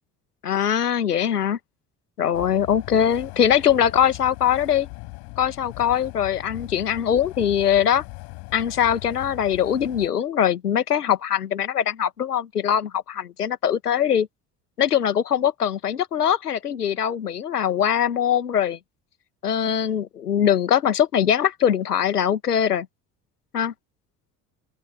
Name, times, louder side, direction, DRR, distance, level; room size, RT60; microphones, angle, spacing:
voice 1, 0.4-1.6 2.2-4.9 5.4-8.0 8.5-14.3 14.8-18.8 19.4-22.9 23.5-23.7, left 9 dB, 80° left, 1.8 m, -22 dB
sound 1, 2.3-10.1, left 34 dB, 65° left, 7.9 m, -40 dB
open air
figure-of-eight pair, 55°, 46 cm